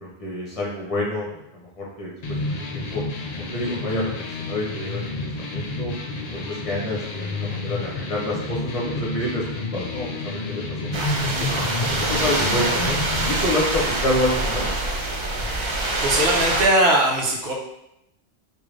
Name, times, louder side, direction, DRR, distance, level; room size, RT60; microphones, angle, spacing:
voice 1, 0.0-3.0 3.3-5.9 6.3-11.4 11.9-13.0 13.2-14.8, left 1 dB, 35° left, -5 dB, 1.0 m, -28 dB
sound 1, 2.2-13.4, left 2 dB, 50° left, 0.5 m, -30 dB
sound 2, 10.9-16.6, right 2 dB, 45° right, 0.4 m, -25 dB
voice 2, 16.0-17.5, right 1 dB, 75° right, -1 dB, 1.0 m, -20 dB
3.7 x 2.6 x 3.2 m, 0.84 s
omnidirectional pair, 1.1 m